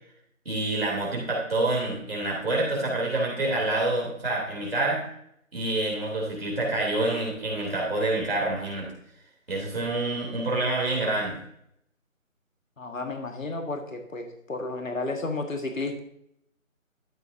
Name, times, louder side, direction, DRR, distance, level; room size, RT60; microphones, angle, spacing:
voice 1, 0.4-5.0 5.5-8.9 9.5-11.4, right 2 dB, 45° right, -3 dB, 3.2 m, -27 dB
voice 2, 12.8-16.0, left 2 dB, 70° left, 4 dB, 1.7 m, -32 dB
13.0 x 7.5 x 2.7 m, 0.72 s
figure-of-eight pair, 170°, 41 cm